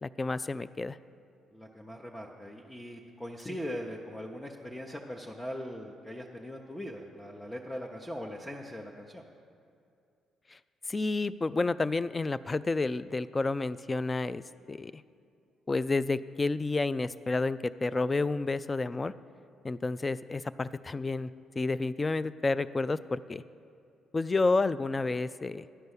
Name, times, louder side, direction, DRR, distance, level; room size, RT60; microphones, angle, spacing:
voice 1, 0.0-1.0 3.5-3.6 10.5-10.6 10.9-14.4 14.7-15.0 15.7-19.1 19.6-21.3 21.6-23.4 24.1-25.6, left 3 dB, 30° left, 16 dB, 0.3 m, -30 dB
voice 2, 1.5-9.2, equal, 10° left, -1 dB, 0.9 m, -40 dB
11.0 x 5.4 x 8.0 m, 2.5 s
hypercardioid pair, 50°, 0 cm